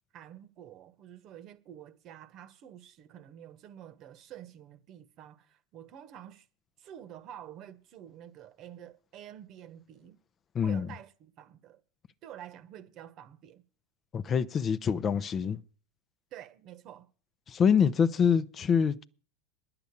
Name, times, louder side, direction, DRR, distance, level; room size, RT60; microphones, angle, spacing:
voice 1, 0.1-6.5 6.8-10.2 10.6-11.8 12.2-13.6 16.3-17.1, right 10 dB, 45° right, 1.2 m, -49 dB
voice 2, 10.5-10.9 14.1-15.6 17.5-19.0, left 7 dB, 30° left, 0.7 m, -25 dB
10.5 x 6.9 x 8.5 m
hypercardioid pair, 100°, 0 cm